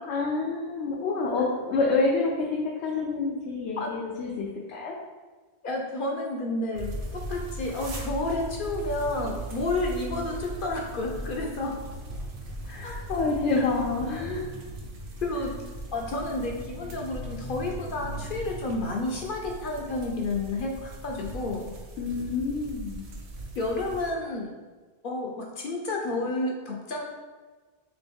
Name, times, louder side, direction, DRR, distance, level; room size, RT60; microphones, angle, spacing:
voice 1, 0.0-4.9 12.7-14.5 22.0-23.1, left 3 dB, 90° left, -3 dB, 0.9 m, -28 dB
voice 2, 5.6-11.8 12.8-13.0 15.2-15.6 15.9-21.7 23.6-24.5 25.0-27.0, left 2 dB, 60° left, 0 dB, 0.6 m, -30 dB
sound 1, 6.7-24.1, right 1 dB, 60° right, 0.8 m, -38 dB
3.3 x 3.0 x 3.4 m, 1.3 s
omnidirectional pair, 1.1 m